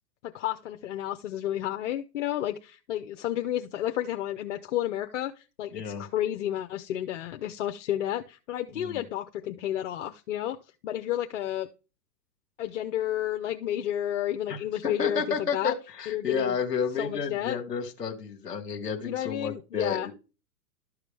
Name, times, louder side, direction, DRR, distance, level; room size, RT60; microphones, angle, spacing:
voice 1, 0.2-10.6 10.8-11.7 12.6-15.8 16.1-16.6 17.0-17.6 19.0-20.1, left 12 dB, 50° left, 6 dB, 0.7 m, -31 dB
voice 2, 5.7-6.0 8.7-9.0 14.5-20.1, left 6 dB, ahead, -11 dB, 0.4 m, -31 dB
12.5 x 4.8 x 3.4 m, 0.32 s
hypercardioid pair, 150°, 50 cm